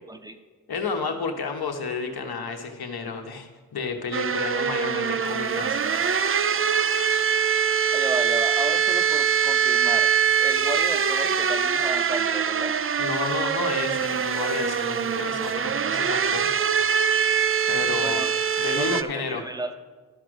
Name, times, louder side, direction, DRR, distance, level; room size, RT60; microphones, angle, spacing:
voice 1, 0.7-5.8 13.0-16.5 17.7-18.2 18.6-19.4, left 4 dB, 70° left, 4 dB, 1.3 m, -31 dB
sound 1, 4.1-19.0, right 7 dB, 35° right, 0.4 m, -23 dB
voice 2, 7.9-10.1 10.4-12.7 18.0-18.3 18.6-19.7, right 1 dB, 10° right, 8 dB, 0.8 m, -33 dB
12.0 x 5.0 x 6.2 m, 1.3 s
cardioid pair, 65°, 39 cm